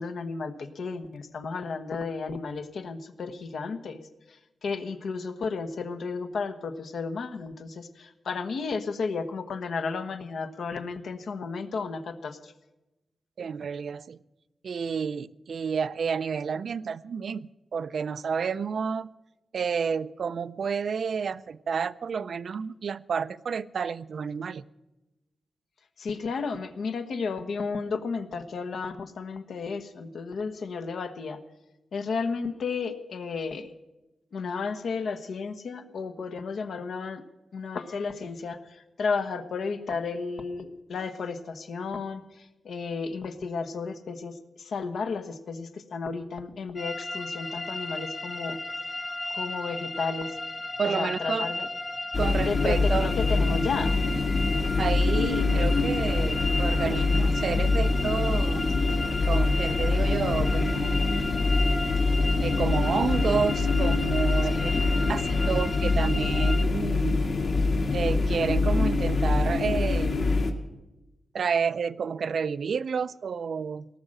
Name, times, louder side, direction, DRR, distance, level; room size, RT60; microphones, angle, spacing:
voice 1, 0.0-4.0 4.3-12.5 26.0-31.4 31.9-33.7 34.3-37.2 37.5-48.6 49.3-50.4 50.8-51.7 52.4-53.9 62.0-62.1 64.5-64.8, left 4 dB, 70° left, 8 dB, 1.1 m, -33 dB
voice 2, 13.4-14.2 14.6-19.1 19.5-24.6 50.8-51.5 52.2-53.1 54.8-58.7 59.2-61.1 62.4-64.7 65.1-67.3 67.9-70.3 71.3-73.9, right 6 dB, 60° right, 16 dB, 0.4 m, -30 dB
sound 1, 46.8-66.6, left 2 dB, 30° left, 1.0 m, -35 dB
sound 2, 52.1-70.5, left 3 dB, 55° left, 1.5 m, -25 dB
18.0 x 6.5 x 8.8 m, 1.0 s
wide cardioid pair, 145°, 0 cm